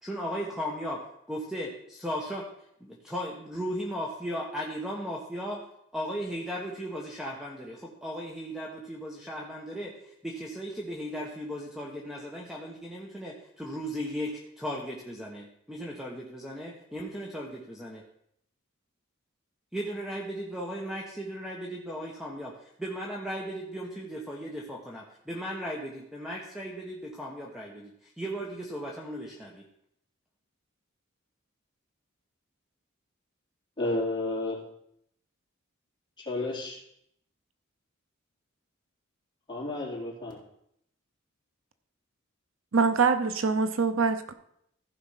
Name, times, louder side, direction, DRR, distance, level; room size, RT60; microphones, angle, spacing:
voice 1, 0.0-2.5 2.8-5.7 5.9-18.0 19.7-22.5 22.8-29.6, equal, ahead, -2 dB, 1.2 m, -36 dB
voice 2, 33.8-34.6 36.2-36.8 39.5-40.4, left 2 dB, 25° left, -5 dB, 3.4 m, -31 dB
voice 3, 42.7-44.3, right 5 dB, 80° right, 10 dB, 0.8 m, -24 dB
15.0 x 5.0 x 5.7 m, 0.73 s
head